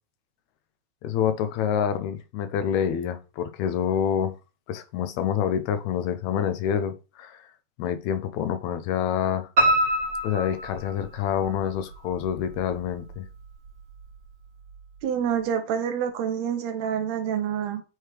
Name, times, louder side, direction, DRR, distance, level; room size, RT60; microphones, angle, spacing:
voice 1, 1.0-4.3 4.7-7.4 7.8-9.5 10.2-13.3, left 9 dB, 80° left, 1.9 m, -27 dB
Piano, 9.6-11.5 11.9-12.8 13.1-13.2 13.7-13.8 14.0-14.1, right 1 dB, 45° right, 2.1 m, -24 dB
voice 2, 15.0-17.8, right 8 dB, 80° right, 1.8 m, -27 dB
9.0 x 3.2 x 3.3 m
omnidirectional pair, 3.3 m